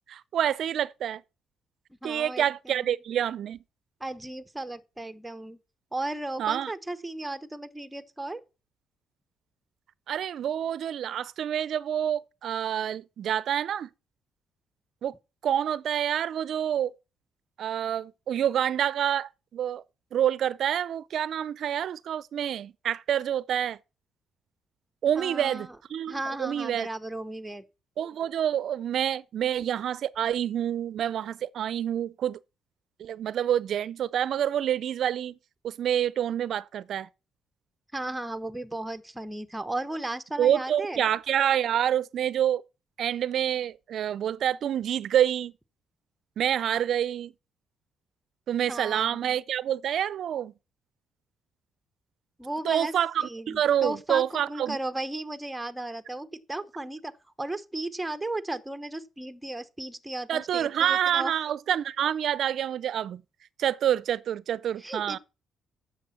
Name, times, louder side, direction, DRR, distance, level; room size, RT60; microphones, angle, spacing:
voice 1, 0.1-1.2 2.0-3.6 6.4-6.7 10.1-13.9 15.0-15.1 15.4-16.9 17.6-19.8 20.1-23.8 25.0-26.9 28.0-32.4 33.0-35.4 35.6-37.1 40.4-42.6 43.0-45.5 46.4-47.3 48.5-50.5 52.6-54.8 60.3-63.2 63.6-65.2, right 10 dB, 65° right, 0.4 m, -27 dB
voice 2, 2.0-2.9 4.0-5.6 5.9-8.4 25.2-25.8 26.1-27.6 37.9-41.0 48.7-49.4 52.4-52.9 53.2-57.1 57.4-61.3 64.8-65.2, right 2 dB, 10° right, 0.9 m, -35 dB
9.8 x 7.0 x 5.7 m
cardioid pair, 90°, 0 cm